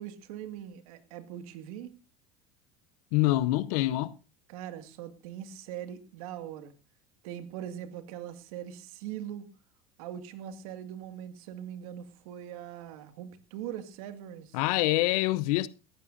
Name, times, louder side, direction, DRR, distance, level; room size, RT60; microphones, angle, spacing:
voice 1, 0.0-1.9 4.5-6.7 7.2-9.5 10.0-14.6, right 10 dB, 80° right, 2.1 m, -41 dB
voice 2, 3.1-4.1 14.5-15.7, left 17 dB, 75° left, 0.8 m, -25 dB
19.5 x 15.0 x 2.7 m
supercardioid pair, 105°, 18 cm